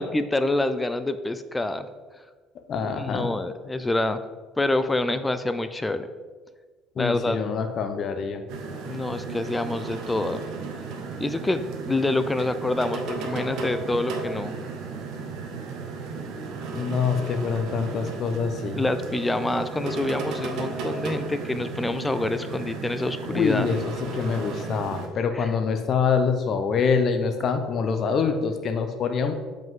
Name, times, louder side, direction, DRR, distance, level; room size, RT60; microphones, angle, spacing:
voice 1, 0.0-1.9 2.8-4.2 4.6-6.1 7.0-7.4 8.8-10.4 11.2-14.5 18.8-23.7 25.3-25.5, left 2 dB, 10° left, 11 dB, 0.4 m, -27 dB
voice 2, 2.7-3.3 7.0-8.4 16.7-18.8 23.3-29.3, left 5 dB, 40° left, 7 dB, 0.7 m, -25 dB
sound 1, 8.5-25.1, right 4 dB, 70° right, 1.1 m, -34 dB
7.8 x 5.2 x 3.7 m, 1.4 s
cardioid pair, 135°, 0 cm